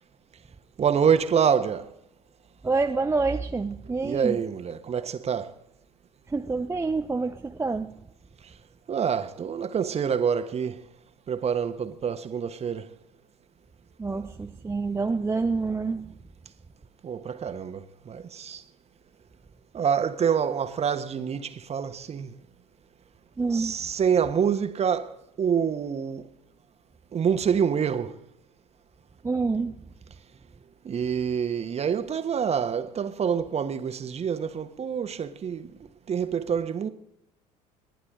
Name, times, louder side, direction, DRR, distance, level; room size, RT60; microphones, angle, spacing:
voice 1, 0.8-1.9 4.0-5.5 8.9-10.8 11.3-12.9 17.0-18.6 19.7-22.3 23.5-26.3 27.1-28.1 30.8-35.7 36.1-36.9, right 7 dB, 30° right, 1.4 m, -26 dB
voice 2, 2.6-4.4 6.3-8.0 14.0-16.2 23.4-23.8 29.2-29.9, right 4 dB, 15° right, 0.7 m, -27 dB
28.5 x 11.0 x 3.8 m
figure-of-eight pair, 65°, 20 cm